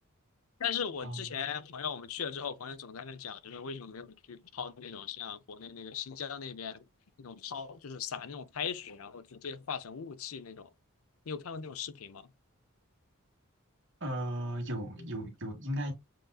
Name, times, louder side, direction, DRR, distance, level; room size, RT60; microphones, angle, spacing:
voice 1, 0.6-6.8 7.2-10.7 11.3-12.3, left 7 dB, 75° left, 0.6 m, -39 dB
voice 2, 14.0-15.9, equal, 55° right, 1.7 m, -36 dB
7.5 x 2.6 x 2.3 m
head